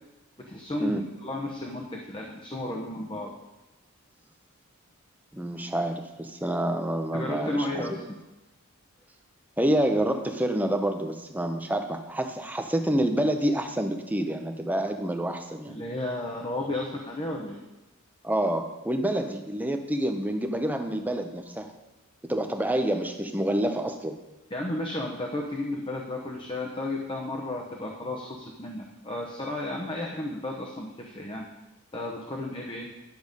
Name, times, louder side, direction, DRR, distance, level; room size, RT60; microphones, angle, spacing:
voice 1, 0.4-3.3 7.1-8.2 15.7-17.6 24.5-31.5 31.9-32.9, left 1 dB, 25° left, -1 dB, 0.9 m, -33 dB
voice 2, 5.3-7.8 9.6-15.8 18.2-21.7 22.3-24.2, right 1 dB, 10° right, 5 dB, 0.7 m, -28 dB
10.5 x 6.8 x 5.3 m, 1.1 s
head